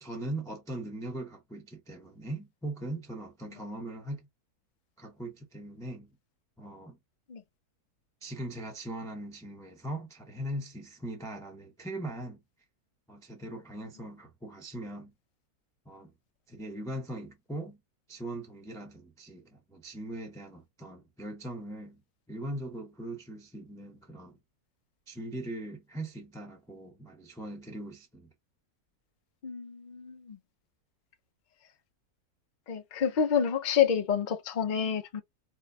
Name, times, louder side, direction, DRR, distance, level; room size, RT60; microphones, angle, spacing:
voice 1, 0.0-4.3 5.0-6.1 6.6-7.0 8.2-12.4 13.1-15.1 15.9-16.1 16.5-17.8 18.1-22.0 22.3-24.4 25.1-28.3, right 1 dB, 5° left, 0.5 m, -40 dB
voice 2, 29.4-30.4 32.7-35.2, left 8 dB, 65° left, 0.4 m, -28 dB
4.4 x 2.2 x 2.7 m
omnidirectional pair, 1.7 m